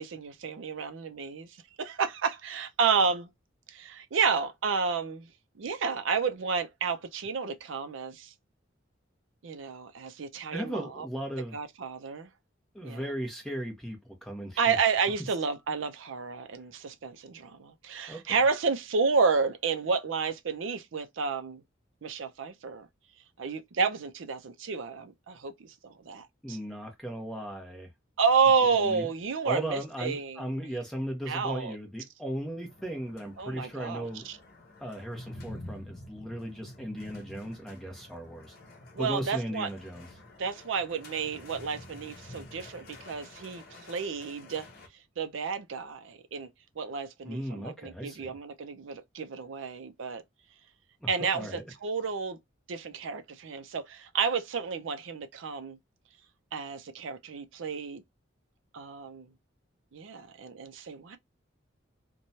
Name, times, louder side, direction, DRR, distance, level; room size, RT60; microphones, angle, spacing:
voice 1, 0.0-1.5 1.8-3.3 3.7-5.3 5.6-8.3 9.4-11.1 11.5-12.3 12.8-13.0 14.6-21.6 22.0-22.9 23.4-26.6 28.2-30.7 31.3-31.7 33.4-34.4 38.9-39.7 40.4-44.7 45.2-46.5 46.8-50.2 51.1-52.4 52.7-55.8 56.5-58.0 58.7-59.3 59.9-61.2, right 5 dB, 80° right, 0.5 m, -30 dB
voice 2, 10.5-11.6 12.7-14.8 18.1-18.4 26.4-27.9 28.7-29.1 29.4-34.3 34.8-38.5 39.0-40.1 47.2-48.4 51.0-51.7, equal, ahead, 0.7 m, -37 dB
sound 1, 32.6-44.9, left 1 dB, 50° left, 0.8 m, -48 dB
3.0 x 2.2 x 2.6 m
head